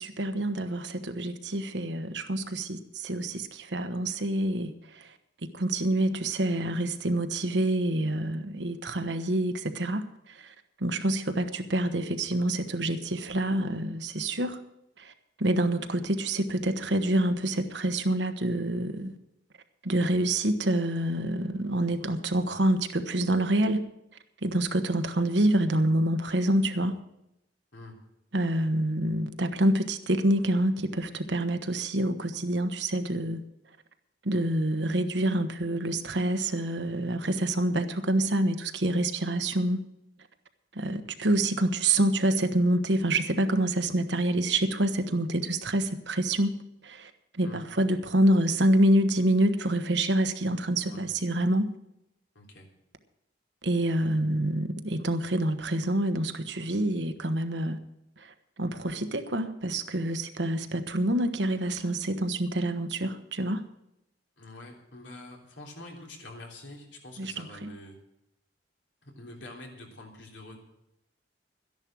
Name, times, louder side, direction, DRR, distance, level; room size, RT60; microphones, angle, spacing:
voice 1, 0.0-5.1 5.5-14.6 15.0-15.1 15.4-19.2 19.8-23.9 24.4-27.0 28.3-33.4 34.2-39.8 40.7-46.6 46.8-51.7 53.6-57.8 58.2-63.6 67.2-67.7, right 1 dB, 70° right, 8 dB, 1.2 m, -27 dB
voice 2, 27.7-28.0 47.4-47.6 50.8-51.1 52.3-52.7 64.4-68.0 69.0-70.6, left 2 dB, 80° left, 1 dB, 3.4 m, -46 dB
13.0 x 10.5 x 6.3 m, 0.84 s
head